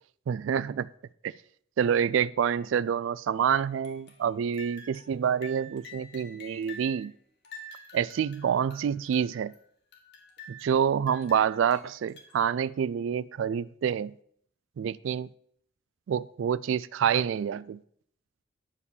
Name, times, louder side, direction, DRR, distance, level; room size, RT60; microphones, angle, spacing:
voice 1, 0.3-0.9 1.2-1.3 1.8-7.1 7.9-9.5 10.6-14.1 14.8-15.3 16.1-17.8, right 8 dB, 70° right, 0.3 m, -27 dB
sound 1, 3.8-4.3 4.5-5.2 5.4-7.0 7.4-9.6 9.9-10.8 11.1-12.5, left 1 dB, 60° left, 1.7 m, -48 dB
9.8 x 5.0 x 6.9 m
head